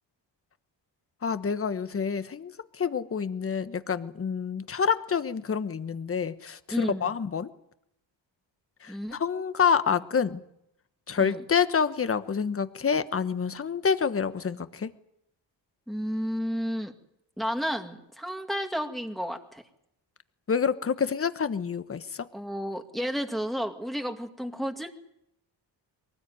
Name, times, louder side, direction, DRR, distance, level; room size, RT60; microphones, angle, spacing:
voice 1, 1.2-7.5 8.8-10.4 11.1-14.9 20.5-22.3, left 6 dB, 30° left, 12 dB, 1.3 m, -28 dB
voice 2, 6.7-7.1 8.9-9.2 11.2-11.4 15.9-16.9 17.4-19.6 22.3-24.9, equal, ahead, 5 dB, 2.2 m, -32 dB
23.0 x 19.0 x 9.5 m, 0.78 s
cardioid pair, 125°, 43 cm